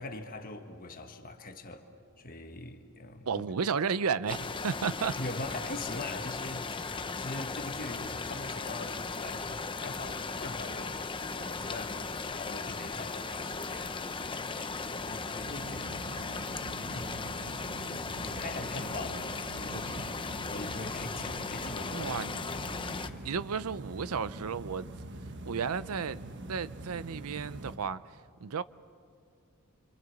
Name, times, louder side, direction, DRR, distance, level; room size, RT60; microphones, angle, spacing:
voice 1, 0.0-1.9 2.2-3.4 5.2-16.3 16.9-17.3 18.1-22.2 22.5-23.3, left 2 dB, 40° left, 1.5 m, -42 dB
voice 2, 3.2-5.2 19.7-20.0 21.9-22.3 23.2-24.9 25.4-26.2 26.5-28.0 28.4-28.6, right 6 dB, 85° right, 0.6 m, -33 dB
sound 1, 4.3-23.1, left 4 dB, 25° left, 0.8 m, -37 dB
sound 2, 15.4-27.8, right 1 dB, 55° right, 1.3 m, -44 dB
28.0 x 26.5 x 7.2 m
head